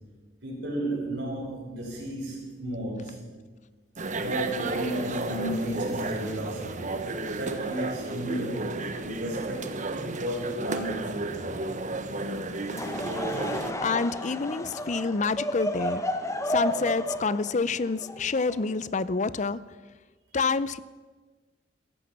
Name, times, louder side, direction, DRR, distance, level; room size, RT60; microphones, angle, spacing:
voice 1, 0.4-3.4 4.1-7.0 7.4-9.8 10.1-11.5, right 1 dB, 75° right, -5 dB, 5.8 m, -33 dB
sound 1, 4.0-13.7, right 2 dB, 45° right, 1.1 m, -33 dB
Laughter / Crowd, 12.6-19.0, left 1 dB, 15° left, 1.2 m, -32 dB
voice 2, 13.8-16.0 16.5-19.6 20.3-20.8, left 4 dB, 40° left, 17 dB, 0.6 m, -28 dB
16.5 x 14.0 x 6.0 m, 1.4 s
head